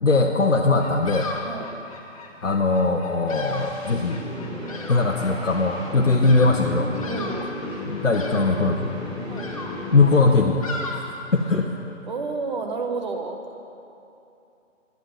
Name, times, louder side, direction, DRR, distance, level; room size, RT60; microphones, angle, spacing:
voice 1, 0.0-1.3 2.4-4.2 4.9-6.9 7.9-8.9 9.9-10.6 10.9-11.0 11.3-11.7, left 3 dB, 75° left, 1 dB, 0.9 m, -20 dB
Bird vocalization bird call bird song, 0.7-11.7, left 2 dB, 30° left, 0.9 m, -38 dB
sound 1, 2.9-10.6, left 2 dB, ahead, 1.4 m, -34 dB
voice 2, 7.0-7.5 9.3-9.5 12.1-13.4, right 4 dB, 35° right, 3 dB, 1.0 m, -30 dB
10.5 x 9.2 x 6.1 m, 2.8 s
figure-of-eight pair, 140°, 37 cm